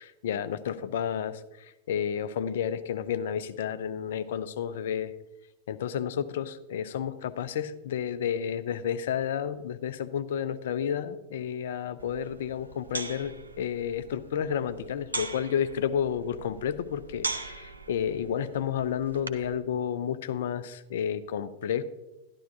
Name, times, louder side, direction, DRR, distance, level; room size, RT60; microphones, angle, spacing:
voice 1, 0.0-5.1 5.7-21.8, left 8 dB, 60° left, 13 dB, 0.5 m, -31 dB
sound 1, 12.0-19.6, right 3 dB, 80° right, 0.6 m, -40 dB
12.0 x 11.5 x 2.7 m, 1.0 s
figure-of-eight pair, 90°, 0 cm